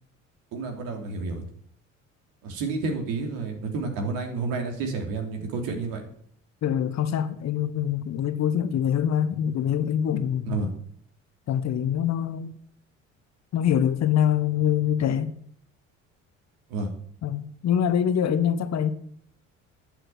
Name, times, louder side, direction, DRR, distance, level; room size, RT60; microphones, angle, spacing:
voice 1, 0.5-1.4 2.4-6.0 10.5-10.7 16.7-16.9, right 3 dB, 60° right, 3.2 m, -30 dB
voice 2, 6.6-10.6 11.5-12.5 13.5-15.3 17.2-18.9, left 9 dB, 45° left, 1.1 m, -24 dB
11.0 x 6.5 x 9.3 m
figure-of-eight pair, 55°, 39 cm